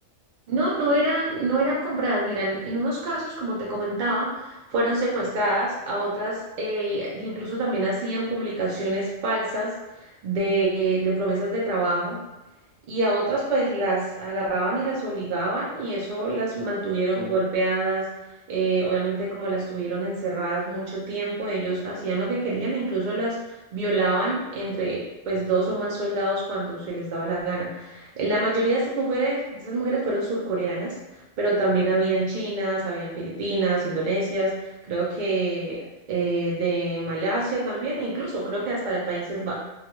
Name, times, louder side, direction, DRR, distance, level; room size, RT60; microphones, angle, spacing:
voice 1, 0.5-12.2 12.9-18.1 18.5-31.0 31.4-34.5 34.9-39.5, right 2 dB, 65° right, -5 dB, 0.4 m, -26 dB
2.3 x 2.2 x 2.9 m, 0.98 s
omnidirectional pair, 1.3 m